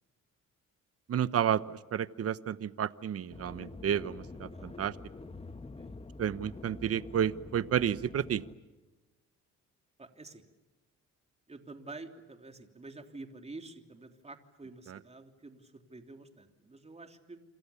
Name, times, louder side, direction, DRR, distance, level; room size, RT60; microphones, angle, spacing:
voice 1, 1.1-5.0 6.2-8.4 14.9-15.0, right 9 dB, 50° right, 15 dB, 1.1 m, -31 dB
sound 1, 3.3-8.6, left 3 dB, 20° left, 1.7 m, -46 dB
voice 2, 4.5-4.8 5.8-6.0 10.0-10.5 11.5-17.4, right 3 dB, 20° right, 5 dB, 3.2 m, -49 dB
28.0 x 27.5 x 7.1 m, 1.2 s
cardioid pair, 90°, 30 cm